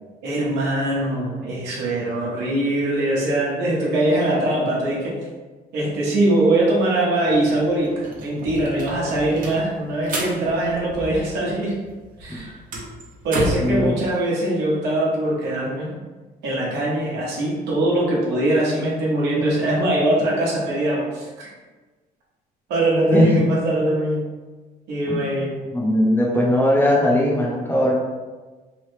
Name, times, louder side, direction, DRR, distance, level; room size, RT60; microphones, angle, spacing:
voice 1, 0.2-5.2 5.7-11.8 12.2-12.6 13.2-16.0 16.4-21.5 22.7-24.3 24.9-25.6, right 1 dB, 80° right, -5 dB, 1.0 m, -22 dB
sound 1, 7.3-7.4 7.7-11.6 11.9-13.8, right 1 dB, 55° right, 0.7 m, -31 dB
voice 2, 13.6-13.9 23.1-23.4 25.1-25.2 25.7-27.9, left 1 dB, 10° left, -4 dB, 0.7 m, -19 dB
3.3 x 2.1 x 3.1 m, 1.3 s
cardioid pair, 110°, 17 cm